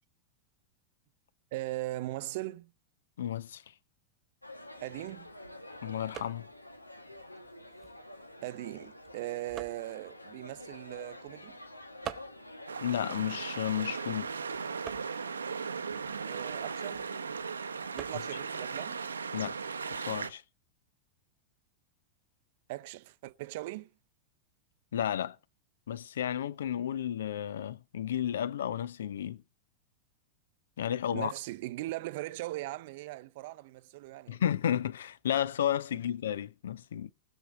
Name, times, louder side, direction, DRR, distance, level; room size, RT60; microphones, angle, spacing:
voice 1, 1.5-2.7 4.8-5.3 8.4-11.6 16.3-17.1 17.9-19.0 22.7-23.9 31.1-34.4, right 18 dB, 50° right, 0.6 m, -39 dB
voice 2, 3.2-3.6 5.8-6.4 12.8-14.3 19.3-20.4 24.9-25.4 25.9-29.4 30.8-31.3 34.3-37.1, left 10 dB, 65° left, 0.7 m, -32 dB
sound 1, 4.4-14.2, left 1 dB, 85° left, 1.4 m, -49 dB
sound 2, 4.6-20.1, right 11 dB, 30° right, 1.2 m, -51 dB
sound 3, 12.7-20.3, right 5 dB, 75° right, 0.9 m, -37 dB
19.0 x 7.0 x 5.1 m
figure-of-eight pair, 90°, 0 cm